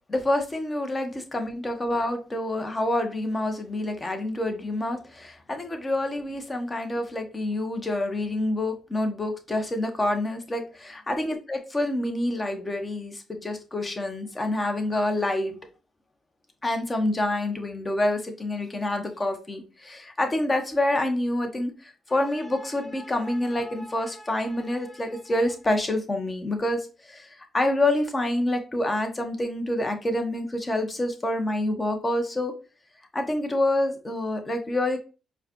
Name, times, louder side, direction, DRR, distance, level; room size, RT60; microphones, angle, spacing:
voice 1, 0.1-15.6 16.6-32.5 33.1-35.0, left 1 dB, 30° left, 5 dB, 1.0 m, -27 dB
4.6 x 2.3 x 2.9 m, 0.34 s
supercardioid pair, 55°, 0 cm